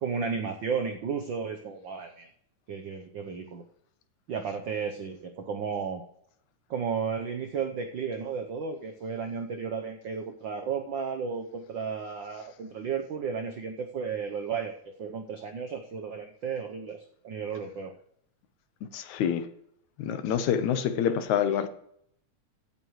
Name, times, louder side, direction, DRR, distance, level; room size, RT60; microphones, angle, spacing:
voice 1, 0.0-2.3 2.7-3.6 4.3-6.0 6.7-17.9, right 6 dB, 85° right, 5 dB, 1.0 m, -33 dB
voice 2, 18.9-19.5 20.0-21.7, left 8 dB, 90° left, 10 dB, 2.3 m, -26 dB
16.0 x 8.9 x 3.2 m, 0.70 s
omnidirectional pair, 3.3 m